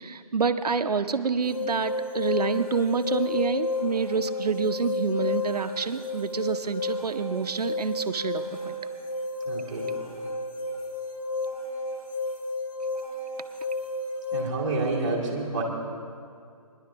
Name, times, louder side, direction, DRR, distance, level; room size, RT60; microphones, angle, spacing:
voice 1, 0.0-8.8, right 5 dB, 90° right, 8 dB, 0.6 m, -28 dB
sound 1, 1.4-14.4, left 2 dB, 70° left, 3.8 m, -32 dB
voice 2, 9.4-10.0 14.3-15.6, right 3 dB, 15° right, -5 dB, 1.3 m, -29 dB
18.5 x 10.5 x 3.4 m, 2.3 s
hypercardioid pair, 170°, 20 cm